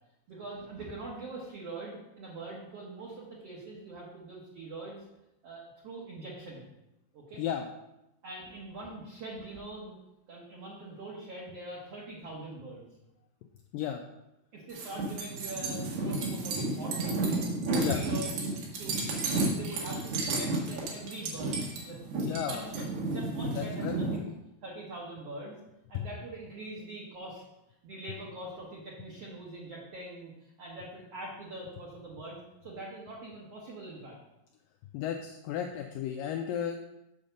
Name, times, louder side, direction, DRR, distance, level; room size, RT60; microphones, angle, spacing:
voice 1, 0.3-5.0 5.4-6.6 7.1-7.4 8.2-10.0 10.3-12.9 14.5-17.3 17.7-18.5 18.8-19.2 19.6-22.0 22.3-24.2 24.6-25.5 25.9-27.4 27.8-34.2, right 2 dB, 55° right, -4 dB, 1.8 m, -43 dB
voice 2, 7.4-7.7 13.7-14.0 17.8-18.0 22.2-22.7 23.5-23.9 24.2-24.3 25.9-26.1 34.9-36.8, left 9 dB, 85° left, 4 dB, 2.0 m, -33 dB
sound 1, 14.7-24.2, right 2 dB, 80° right, 3.6 m, -32 dB
7.2 x 5.2 x 6.6 m, 0.90 s
omnidirectional pair, 4.5 m